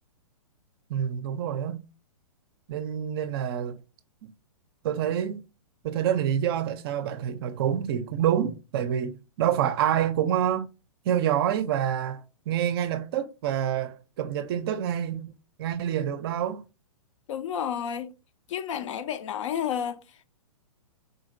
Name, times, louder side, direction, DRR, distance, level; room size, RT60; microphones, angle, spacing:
voice 1, 0.9-1.8 2.7-3.8 4.2-4.3 4.8-5.4 5.8-10.7 11.1-15.3 15.6-16.6, right 10 dB, 40° right, 0.5 m, -27 dB
voice 2, 17.3-18.1 18.5-20.0, left 9 dB, 55° left, 0.5 m, -31 dB
3.8 x 2.7 x 2.6 m
hypercardioid pair, 135°, 19 cm